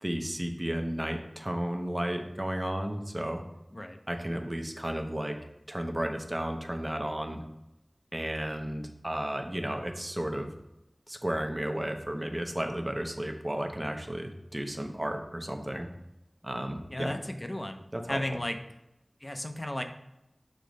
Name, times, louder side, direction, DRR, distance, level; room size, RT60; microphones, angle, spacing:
voice 1, 0.0-3.4 4.1-5.4 5.7-7.4 8.1-10.5 11.1-15.9 16.4-17.1 17.9-18.2, right 1 dB, 30° right, 4 dB, 0.8 m, -33 dB
voice 2, 16.9-18.6 19.2-19.8, left 1 dB, 35° left, 6 dB, 0.6 m, -34 dB
6.5 x 3.1 x 5.2 m, 0.88 s
wide cardioid pair, 45°, 0 cm